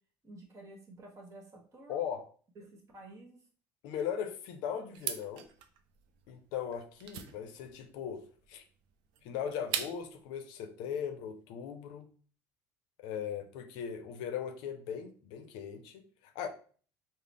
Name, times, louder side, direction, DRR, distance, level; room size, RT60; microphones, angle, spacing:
voice 1, 0.2-2.0 2.6-3.4, right 2 dB, 40° right, 1.2 m, -51 dB
voice 2, 1.9-2.3 3.8-5.5 6.3-8.6 9.2-12.1 13.0-16.5, left 8 dB, 80° left, 0.5 m, -39 dB
sound 1, 4.9-10.2, right 9 dB, 70° right, 0.4 m, -41 dB
3.9 x 2.0 x 3.3 m
supercardioid pair, 90°, 8 cm